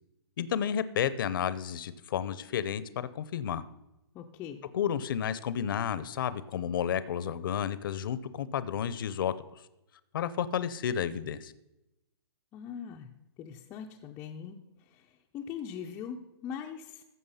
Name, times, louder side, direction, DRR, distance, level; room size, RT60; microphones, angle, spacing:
voice 1, 0.4-3.6 4.7-9.3 10.1-11.5, left 9 dB, 55° left, 15 dB, 0.6 m, -31 dB
voice 2, 4.1-4.7 12.5-13.1 13.4-17.0, left 8 dB, 15° left, -1 dB, 0.4 m, -41 dB
15.0 x 6.0 x 5.6 m, 0.93 s
hypercardioid pair, 165°, 14 cm